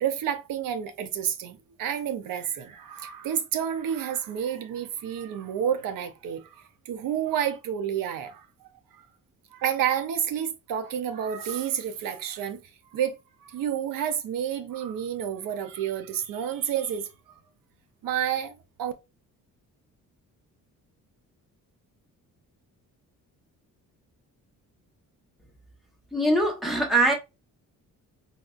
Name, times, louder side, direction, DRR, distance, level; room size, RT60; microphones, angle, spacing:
voice 1, 0.0-6.5 6.8-8.5 8.9-9.0 9.5-12.6 12.9-17.1 18.0-18.9, right 9 dB, 75° right, 0.6 m, -30 dB
voice 2, 26.1-27.1, right 1 dB, ahead, 0.8 m, -22 dB
4.1 x 2.4 x 2.3 m
cardioid pair, 150°, 34 cm